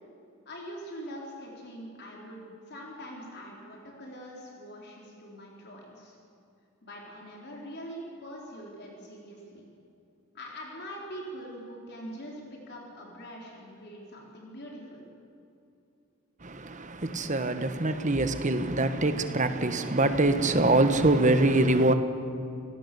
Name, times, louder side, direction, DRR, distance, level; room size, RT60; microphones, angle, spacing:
voice 1, 0.5-6.2 6.8-9.6 10.3-15.0, equal, 50° left, 4.1 m, -43 dB
voice 2, 16.4-21.9, right 2 dB, 35° right, 1.3 m, -24 dB
27.0 x 18.0 x 7.0 m
head